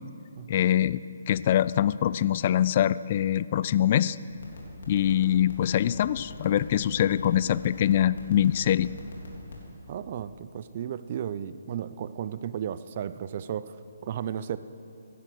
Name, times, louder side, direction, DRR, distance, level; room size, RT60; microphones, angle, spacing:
voice 1, 0.5-4.2 4.9-8.9, left 11 dB, 40° left, 17 dB, 0.3 m, -24 dB
sound 1, 4.3-9.7, left 4 dB, 60° left, 3.5 m, -42 dB
voice 2, 9.9-14.6, right 9 dB, 40° right, 14 dB, 0.5 m, -34 dB
16.5 x 11.0 x 6.3 m, 2.7 s
figure-of-eight pair, 140°, 0 cm